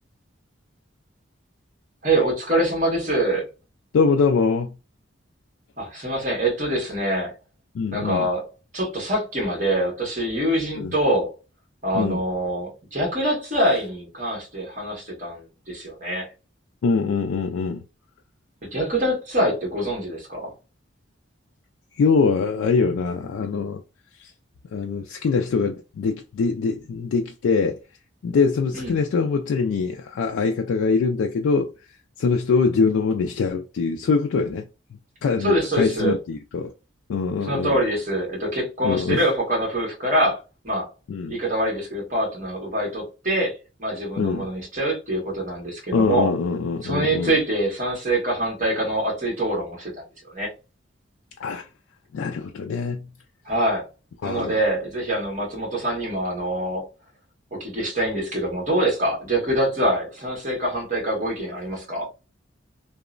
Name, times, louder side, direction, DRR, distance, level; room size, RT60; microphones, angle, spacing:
voice 1, 2.0-3.5 5.8-7.3 7.9-8.5 8.7-11.3 11.8-16.3 18.7-20.5 28.7-29.0 35.4-36.2 37.5-40.9 41.3-46.3 46.8-49.9 50.3-50.5 53.4-53.9 54.2-56.8 57.5-62.1, right 1 dB, 40° right, 1.3 m, -24 dB
voice 2, 3.9-4.7 7.7-8.3 10.8-10.9 11.9-12.2 16.8-17.8 21.9-23.8 24.2-24.3 24.7-27.8 28.2-31.7 32.2-34.7 35.2-36.7 37.1-37.8 38.8-39.3 41.1-41.4 44.2-44.5 45.9-47.4 51.4-51.7 52.1-53.1 54.2-54.6, left 4 dB, 80° left, 0.3 m, -23 dB
2.9 x 2.0 x 2.4 m
head